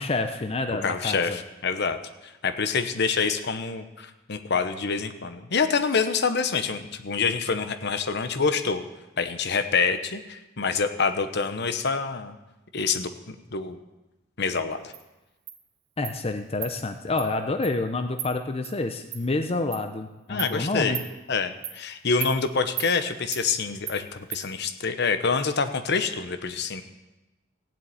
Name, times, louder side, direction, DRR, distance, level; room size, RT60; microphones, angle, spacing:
voice 1, 0.0-1.4 16.0-21.0, left 2 dB, 30° left, 7 dB, 0.7 m, -28 dB
voice 2, 0.8-8.8 9.2-12.3 12.7-13.8 14.4-14.9 20.3-21.0 21.3-26.8, left 5 dB, 60° left, 9 dB, 1.0 m, -26 dB
Insect, 14.9-15.0 15.5-15.6 16.0-16.2 16.6-16.7 17.2-17.3 17.6-17.7 18.2-18.3 18.6-18.7 19.1-19.2 19.7-19.8 20.4-20.5 20.9-21.1 21.6-21.8 22.2-22.3 22.8-22.9 23.3-23.4 23.9-24.0 24.3-24.4, right 10 dB, 75° right, 1.7 m, -34 dB
15.5 x 7.5 x 9.0 m, 1.0 s
head